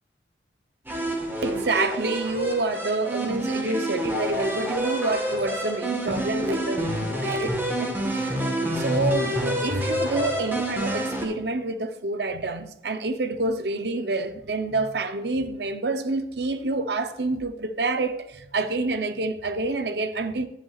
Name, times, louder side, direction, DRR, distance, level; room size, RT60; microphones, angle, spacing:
sound 1, 0.9-11.2, equal, 10° right, 1.5 m, -28 dB
voice 1, 1.4-8.5 8.7-20.5, right 3 dB, 70° right, 0.8 m, -28 dB
10.5 x 10.5 x 2.5 m
head